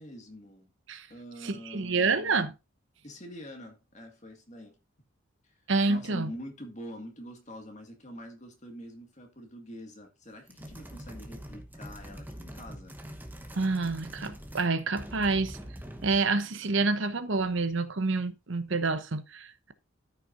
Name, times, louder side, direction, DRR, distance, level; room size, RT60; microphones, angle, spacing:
voice 1, 0.0-0.7 1.1-2.5 3.0-4.8 5.4-5.5 5.9-13.0, equal, 35° left, 1.9 m, -45 dB
voice 2, 1.4-2.5 5.7-6.3 13.6-15.6 16.0-19.7, right 3 dB, 60° right, 0.9 m, -28 dB
sound 1, 10.5-14.7 14.9-16.3, equal, 10° right, 0.9 m, -44 dB
13.5 x 5.8 x 2.6 m
head